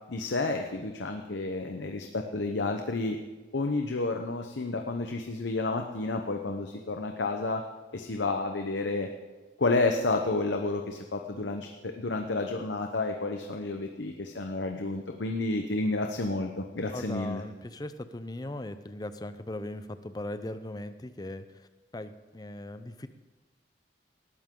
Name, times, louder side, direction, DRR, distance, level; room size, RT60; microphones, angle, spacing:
voice 1, 0.1-3.2 3.5-7.6 7.9-9.1 9.6-17.4, left 3 dB, 80° left, 4 dB, 0.9 m, -30 dB
voice 2, 16.9-23.1, left 1 dB, 20° left, 11 dB, 0.5 m, -39 dB
19.0 x 12.5 x 3.8 m, 1.2 s
head